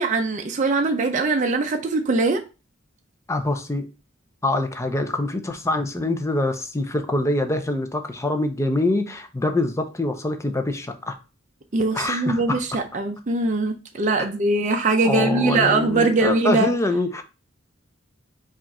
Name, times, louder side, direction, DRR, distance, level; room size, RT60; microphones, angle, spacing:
voice 1, 0.0-2.4 11.7-16.7, right 3 dB, 40° right, 0.5 m, -21 dB
voice 2, 3.3-3.9 4.4-11.2 11.9-12.8 15.0-17.2, left 2 dB, 15° left, 0.5 m, -24 dB
4.9 x 2.5 x 4.1 m
head